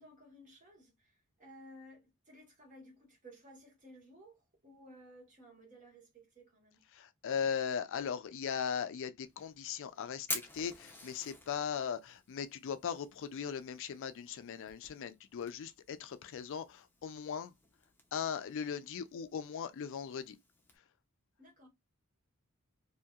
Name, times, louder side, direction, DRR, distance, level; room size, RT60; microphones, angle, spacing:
voice 1, 0.0-6.8 21.4-21.7, equal, 35° right, 1.4 m, -57 dB
voice 2, 6.9-10.3 10.5-17.5 18.1-20.4, left 7 dB, 60° left, 0.4 m, -38 dB
Fire, 9.2-20.8, left 2 dB, 10° left, 0.6 m, -49 dB
2.8 x 2.7 x 2.3 m
head